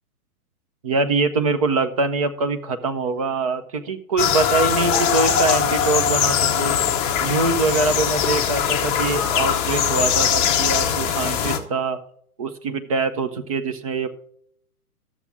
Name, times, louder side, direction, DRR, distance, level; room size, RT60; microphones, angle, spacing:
voice 1, 0.8-6.8 7.2-12.0 12.4-14.1, right 3 dB, 25° right, 9 dB, 0.5 m, -23 dB
sound 1, 4.2-11.6, left 8 dB, 15° left, 0.6 m, -21 dB
12.0 x 7.3 x 3.4 m, 0.66 s
hypercardioid pair, 140°, 46 cm